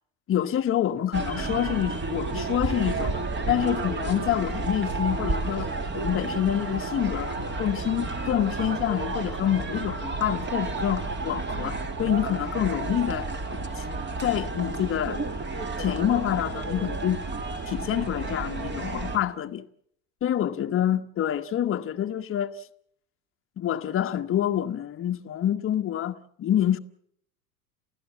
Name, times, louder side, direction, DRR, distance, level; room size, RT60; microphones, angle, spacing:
voice 1, 0.3-3.2 3.5-13.8 14.2-15.2 15.8-17.2 17.7-19.6 20.2-22.6 23.6-26.8, left 10 dB, 30° left, 1.2 m, -27 dB
sound 1, 1.1-19.2, right 3 dB, 25° right, 2.8 m, -31 dB
29.0 x 16.0 x 7.4 m
figure-of-eight pair, 75°, 44 cm